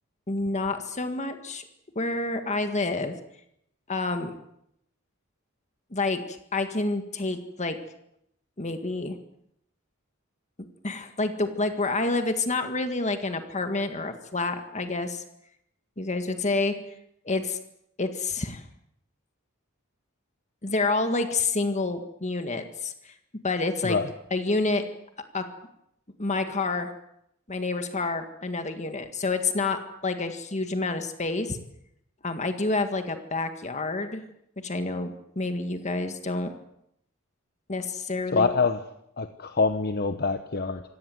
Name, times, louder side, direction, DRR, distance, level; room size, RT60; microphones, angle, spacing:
voice 1, 0.3-1.6 2.0-3.2 3.9-4.3 5.9-7.8 8.6-9.2 10.8-15.2 16.0-16.7 17.3-17.6 18.0-18.6 20.6-23.1 23.4-24.0 24.3-24.8 25.3-25.5 26.2-26.9 27.5-31.6 32.2-34.2 34.6-36.5 37.7-38.5, left 3 dB, 35° left, 7 dB, 1.8 m, -28 dB
voice 2, 38.3-38.8 39.2-40.8, left 4 dB, 50° left, 8 dB, 1.1 m, -25 dB
26.0 x 17.5 x 7.8 m, 0.77 s
head